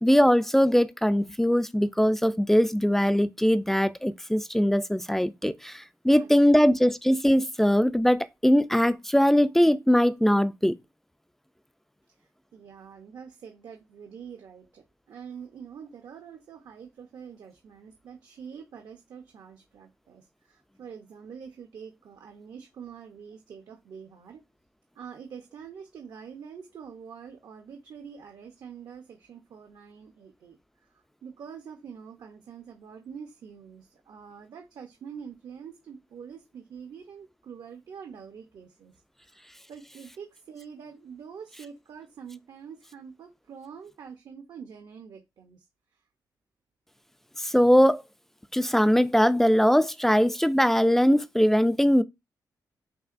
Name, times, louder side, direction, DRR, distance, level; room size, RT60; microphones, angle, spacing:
voice 1, 0.0-10.7 47.4-48.0 48.5-52.0, equal, 5° left, 0.3 m, -21 dB
voice 2, 6.1-6.7 12.5-24.4 24.9-30.6 31.2-38.9 39.3-39.4 39.7-45.6, right 7 dB, 70° right, 0.7 m, -45 dB
5.5 x 2.8 x 2.5 m
cardioid pair, 110°, 7 cm